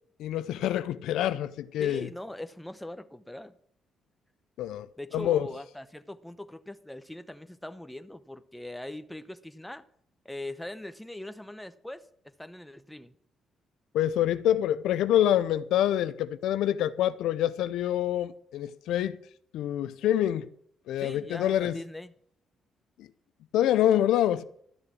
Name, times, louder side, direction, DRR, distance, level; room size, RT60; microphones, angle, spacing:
voice 1, 0.2-2.1 4.6-4.9 5.1-5.5 13.9-19.2 19.5-20.5 20.9-21.8 23.0-23.1 23.5-24.4, left 11 dB, 85° left, 0.6 m, -26 dB
voice 2, 1.8-3.5 5.0-9.8 10.2-12.1 12.4-13.1 21.0-22.1, left 1 dB, 5° left, 0.9 m, -41 dB
13.0 x 6.8 x 8.5 m
cardioid pair, 90°, 0 cm